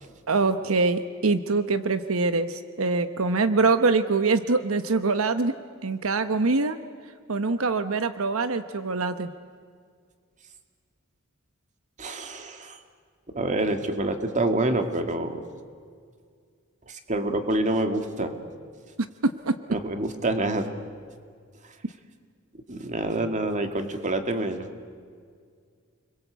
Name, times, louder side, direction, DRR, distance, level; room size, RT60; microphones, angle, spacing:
voice 1, 0.3-5.5 5.8-6.8 7.3-9.3 19.2-19.5, right 3 dB, 90° right, 10 dB, 1.0 m, -24 dB
voice 2, 12.0-12.8 13.3-15.4 16.9-18.3 19.7-20.7 22.7-24.7, right 2 dB, 35° right, 6 dB, 2.2 m, -27 dB
30.0 x 22.0 x 8.1 m, 2.1 s
head